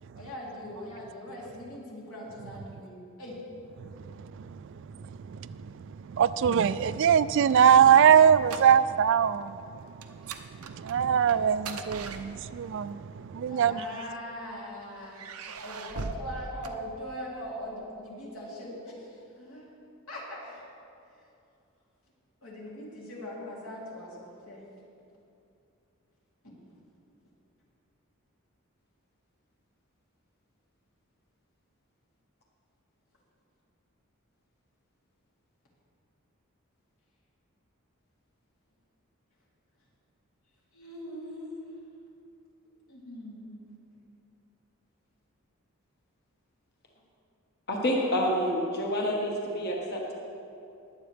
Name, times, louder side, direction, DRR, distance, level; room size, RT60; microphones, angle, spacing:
voice 1, 0.1-3.4 13.5-15.3 15.6-19.7 20.1-20.7 22.4-24.6 40.7-41.5 42.9-43.6, equal, 75° left, -5 dB, 3.2 m, -41 dB
voice 2, 6.2-9.5 10.8-13.0 13.3-13.8, right 8 dB, 60° right, 15 dB, 0.3 m, -21 dB
sound 1, 7.2-9.1 9.4-9.6 10.0-12.8 13.7-14.5 15.1-17.4, right 4 dB, 90° right, 0.7 m, -41 dB
voice 3, 47.7-50.1, equal, 50° left, -1 dB, 1.4 m, -28 dB
21.0 x 8.1 x 3.4 m, 2.6 s
head